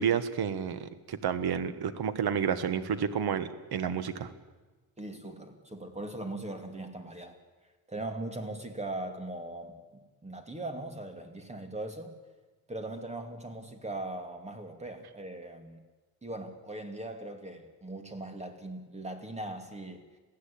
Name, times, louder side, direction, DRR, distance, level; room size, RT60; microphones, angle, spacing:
voice 1, 0.0-4.3, right 7 dB, 80° right, 12 dB, 1.6 m, -30 dB
voice 2, 5.0-7.4 7.9-9.8 10.2-12.1 12.7-15.8 16.2-20.1, right 2 dB, 15° right, 6 dB, 2.7 m, -39 dB
27.0 x 16.0 x 8.7 m, 1.3 s
wide cardioid pair, 140°, 37 cm